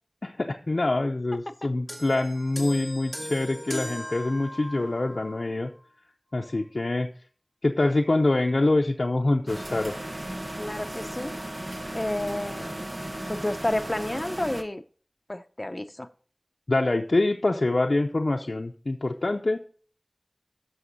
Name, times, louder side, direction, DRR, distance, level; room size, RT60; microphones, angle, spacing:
voice 1, 0.2-5.7 6.3-7.1 7.6-9.9 16.7-19.6, left 2 dB, 80° left, 1 dB, 0.6 m, -25 dB
sound 1, 1.9-5.5 6.4-6.5, equal, 10° right, 2.0 m, -38 dB
sound 2, 9.5-14.6, right 1 dB, 40° right, 1.1 m, -36 dB
voice 2, 10.6-11.3 11.9-12.8 13.3-14.8 15.3-16.1, left 1 dB, 40° left, 11 dB, 0.7 m, -30 dB
11.0 x 6.3 x 4.0 m, 0.42 s
wide cardioid pair, 50°, 0 cm